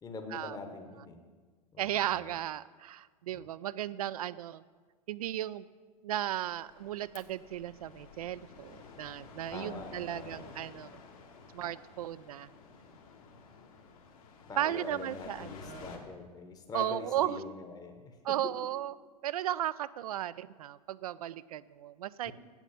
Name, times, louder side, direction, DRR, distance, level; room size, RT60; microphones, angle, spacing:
voice 1, 0.0-1.2 1.7-2.4 3.3-3.5 9.5-10.6 11.6-11.7 14.5-18.2 22.2-22.3, left 4 dB, 20° left, 4 dB, 1.0 m, -44 dB
voice 2, 1.8-4.6 5.1-5.6 6.0-10.9 11.5-12.5 14.6-15.9 16.7-17.4 18.2-18.9 19.2-22.3, right 12 dB, 65° right, 18 dB, 0.4 m, -35 dB
sound 1, 6.3-16.0, left 4 dB, 60° left, 1.6 m, -52 dB
8.1 x 7.1 x 7.3 m, 1.5 s
figure-of-eight pair, 90°, 21 cm